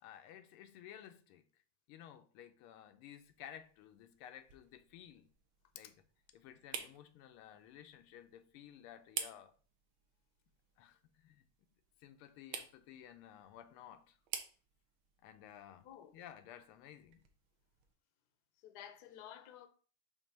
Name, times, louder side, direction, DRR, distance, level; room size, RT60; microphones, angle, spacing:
voice 1, 0.0-1.4 1.9-5.3 5.7-6.0 6.3-9.5 10.8-11.4 12.0-14.2 15.2-17.3, left 10 dB, 85° left, 1.5 m, -55 dB
sound 1, 3.2-18.0, right 7 dB, 75° right, 1.6 m, -51 dB
voice 2, 18.6-19.7, left 10 dB, 65° left, 1.0 m, -52 dB
7.2 x 2.7 x 5.3 m
omnidirectional pair, 2.4 m